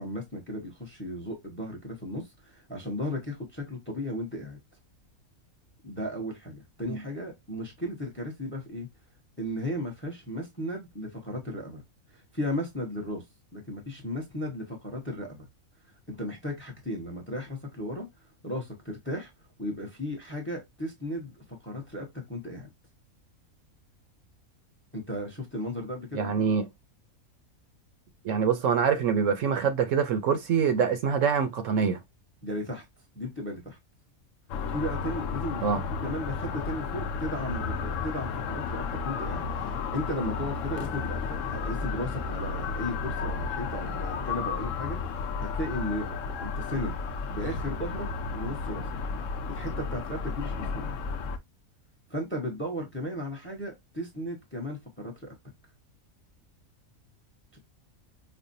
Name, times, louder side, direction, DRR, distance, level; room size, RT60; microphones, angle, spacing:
voice 1, 0.0-4.6 5.8-8.9 9.4-11.8 12.1-13.2 13.5-15.5 16.1-18.1 18.4-19.3 19.6-22.7 24.9-26.5 32.4-32.8 33.1-33.8 34.7-48.8 49.5-51.0 52.1-55.3 57.5-57.6, left 1 dB, 10° left, 0.7 m, -35 dB
voice 2, 26.1-26.7 28.2-32.0 35.6-35.8, right 6 dB, 70° right, 0.9 m, -25 dB
sound 1, 34.5-51.4, left 5 dB, 70° left, 0.9 m, -33 dB
5.2 x 2.2 x 2.6 m
omnidirectional pair, 1.5 m